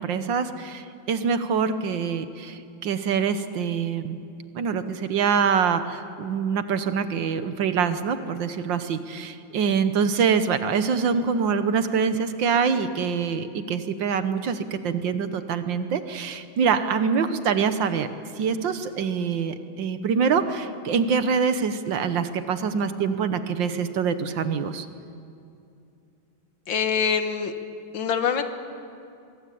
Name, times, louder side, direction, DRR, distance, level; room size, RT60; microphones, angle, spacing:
voice 1, 0.0-4.2 4.5-18.1 18.4-24.8, right 6 dB, 65° right, 10 dB, 1.7 m, -25 dB
voice 2, 26.7-27.5 27.9-28.4, left 7 dB, 70° left, 8 dB, 2.2 m, -24 dB
23.0 x 22.5 x 8.6 m, 2.6 s
omnidirectional pair, 2.3 m